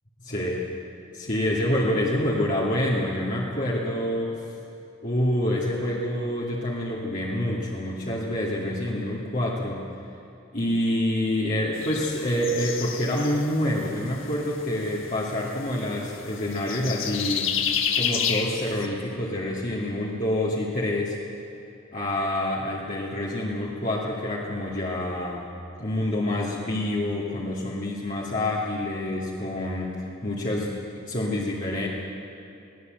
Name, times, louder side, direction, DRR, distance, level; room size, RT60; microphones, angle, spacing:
voice 1, 0.2-0.6 1.1-4.3 5.0-9.8 10.5-17.5 17.9-21.2 21.9-25.4 25.8-30.8 31.1-31.9, left 1 dB, 40° left, -5 dB, 2.4 m, -27 dB
sound 1, 11.7-18.9, left 7 dB, 80° left, 1.6 m, -31 dB
22.5 x 17.5 x 7.8 m, 2.9 s
head